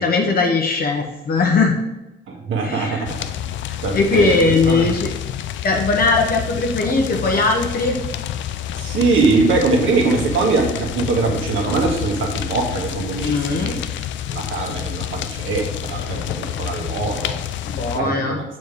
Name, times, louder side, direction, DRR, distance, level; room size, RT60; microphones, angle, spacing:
voice 1, 0.0-1.7 2.6-3.1 3.7-5.1 5.6-8.0 13.2-13.8 17.6-18.4, left 3 dB, 50° left, 1 dB, 1.1 m, -19 dB
voice 2, 2.3-3.2 3.8-4.9 8.7-13.8 14.3-17.4 17.9-18.4, right 3 dB, 75° right, 1 dB, 1.6 m, -22 dB
sound 1, 3.0-18.0, left 10 dB, 70° left, 0.4 m, -28 dB
6.8 x 4.2 x 4.8 m, 0.95 s
cardioid pair, 90°, 20 cm